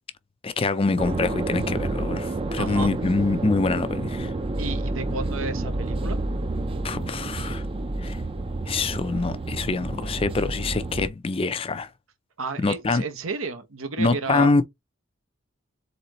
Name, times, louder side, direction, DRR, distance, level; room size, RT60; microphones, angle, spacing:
voice 1, 0.4-4.3 6.8-7.6 8.0-8.2 8.7-11.9 12.6-13.0 14.0-14.7, left 3 dB, 30° left, 0.4 m, -25 dB
sound 1, 1.0-11.1, right 2 dB, 25° right, 0.5 m, -29 dB
voice 2, 2.6-2.9 4.6-6.2 12.4-14.5, right 3 dB, 85° right, 0.9 m, -32 dB
4.1 x 3.8 x 3.0 m
head